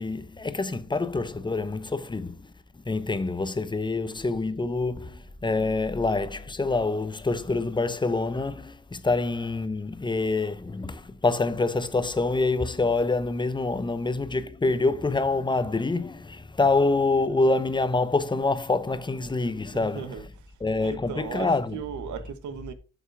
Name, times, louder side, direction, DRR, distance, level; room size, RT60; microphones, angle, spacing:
voice 1, 0.0-20.1 20.6-21.8, left 3 dB, 15° left, 0.8 m, -26 dB
voice 2, 19.7-20.5 20.8-22.7, right 7 dB, 75° right, 1.3 m, -37 dB
8.4 x 5.5 x 4.7 m
cardioid pair, 90°, 30 cm